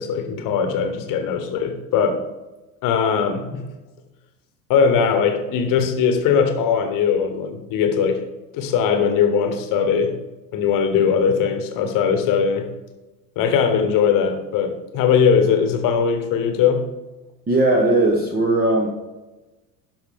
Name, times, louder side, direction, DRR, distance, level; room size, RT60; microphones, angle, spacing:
voice 1, 0.0-2.2 2.8-3.7 4.7-8.2 8.5-10.2 10.5-12.7 13.4-16.9, left 6 dB, 40° left, 7 dB, 1.3 m, -20 dB
voice 2, 17.5-18.9, right 2 dB, 20° right, 0 dB, 1.1 m, -18 dB
12.0 x 5.6 x 3.6 m, 1.1 s
figure-of-eight pair, 70°, 48 cm